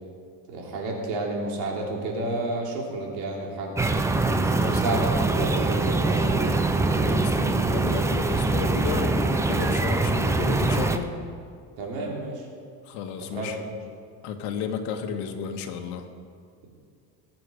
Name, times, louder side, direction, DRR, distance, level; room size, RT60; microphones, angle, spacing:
voice 1, 0.5-3.8 4.6-6.6 11.8-12.5 13.3-13.7, right 2 dB, 90° right, -1 dB, 3.2 m, -30 dB
sound 1, 3.8-11.0, right 3 dB, 10° right, 0.4 m, -23 dB
voice 2, 4.2-5.0 6.9-11.1 12.8-13.6 14.2-16.1, left 7 dB, 75° left, 5 dB, 1.5 m, -33 dB
20.5 x 7.8 x 5.1 m, 2.2 s
cardioid pair, 150°, 39 cm